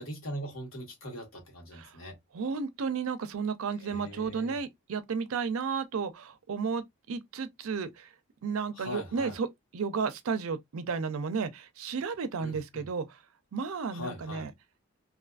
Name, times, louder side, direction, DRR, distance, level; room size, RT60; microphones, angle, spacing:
voice 1, 0.0-2.1 3.8-4.6 8.7-9.4 12.4-12.9 13.9-14.5, equal, 75° left, 1.4 m, -41 dB
voice 2, 2.3-8.1 8.4-9.5 9.7-13.2 13.5-14.5, right 5 dB, 80° right, 0.5 m, -33 dB
2.6 x 2.4 x 2.3 m
head